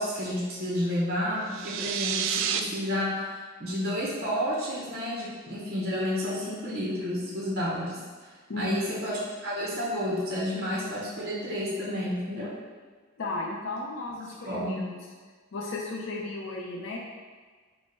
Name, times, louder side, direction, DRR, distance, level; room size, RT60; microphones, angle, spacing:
voice 1, 0.0-8.0 8.6-12.6 14.4-14.8, equal, 50° right, -5 dB, 0.8 m, -30 dB
sound 1, 1.5-2.6, right 8 dB, 65° right, 0.3 m, -29 dB
voice 2, 8.5-8.8 13.2-15.0 15.5-17.0, left 2 dB, 65° left, -2 dB, 0.6 m, -34 dB
5.2 x 2.1 x 4.6 m, 1.5 s
head